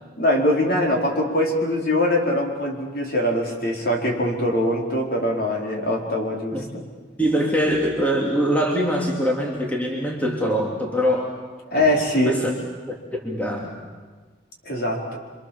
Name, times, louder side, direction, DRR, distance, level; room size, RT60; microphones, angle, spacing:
voice 1, 0.2-6.8 11.7-12.4 14.6-15.2, left 1 dB, 50° left, 0 dB, 4.7 m, -22 dB
voice 2, 7.2-11.3 11.8-11.9 12.2-12.5 12.9-13.8, equal, 10° left, 0 dB, 2.8 m, -23 dB
29.0 x 25.0 x 7.4 m, 1.4 s
head